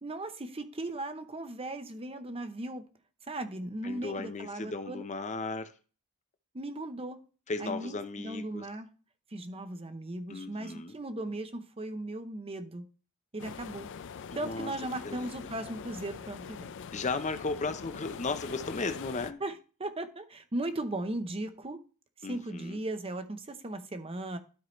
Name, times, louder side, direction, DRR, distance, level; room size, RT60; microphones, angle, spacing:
voice 1, 0.0-2.9 3.3-5.0 6.5-7.2 7.6-8.9 9.3-12.9 13.3-13.9 14.3-16.7 19.4-21.8 22.2-24.4, right 1 dB, 25° right, 0.8 m, -37 dB
voice 2, 3.8-5.7 7.5-8.7 10.3-11.0 14.3-14.7 15.0-15.3 16.9-19.4 22.2-22.8, left 3 dB, 35° left, 0.7 m, -35 dB
sound 1, 13.4-19.3, left 6 dB, 55° left, 0.4 m, -43 dB
12.5 x 4.8 x 3.1 m
head